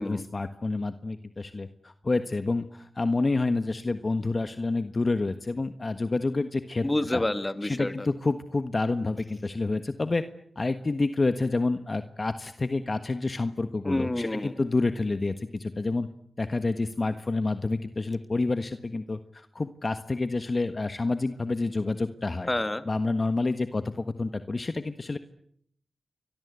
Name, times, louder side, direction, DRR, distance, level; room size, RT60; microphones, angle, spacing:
voice 1, 0.0-6.9 7.1-7.2 7.6-10.2 10.5-16.1 16.4-22.5 22.8-25.2, left 3 dB, 45° left, 10 dB, 1.4 m, -28 dB
voice 2, 6.8-8.1 13.8-14.5 22.5-22.8, left 1 dB, 25° left, 11 dB, 2.5 m, -28 dB
28.5 x 23.0 x 8.3 m, 0.67 s
cardioid pair, 45°, 0 cm